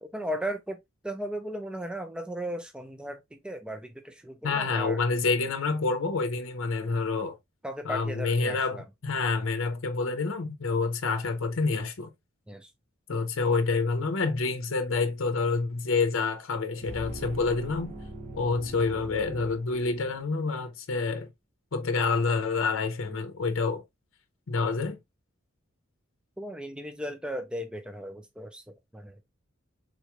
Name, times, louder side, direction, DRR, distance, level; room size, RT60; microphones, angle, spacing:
voice 1, 0.0-0.8 1.0-5.0 7.6-8.8 12.5-12.7 26.4-28.6 28.9-29.2, equal, 5° right, 0.4 m, -36 dB
voice 2, 4.4-7.4 7.8-12.1 13.1-17.9 18.3-21.3 21.7-23.8 24.5-25.0, left 4 dB, 75° left, 0.6 m, -28 dB
sound 1, 16.8-20.3, right 2 dB, 35° right, 1.0 m, -41 dB
3.8 x 3.0 x 2.3 m
head